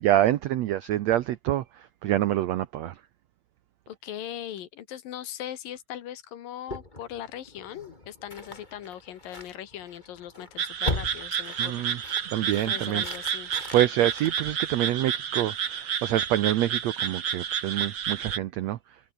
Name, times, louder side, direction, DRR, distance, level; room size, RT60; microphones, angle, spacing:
voice 1, 0.0-2.9 11.6-12.0 12.3-13.0 13.7-18.8, right 13 dB, 80° right, 1.5 m, -26 dB
voice 2, 3.9-11.9 12.6-13.5, left 11 dB, 75° left, 3.3 m, -40 dB
sound 1, 6.7-15.1, left 2 dB, 10° left, 3.7 m, -39 dB
sound 2, 10.6-18.4, right 8 dB, 45° right, 1.8 m, -30 dB
omnidirectional pair, 4.1 m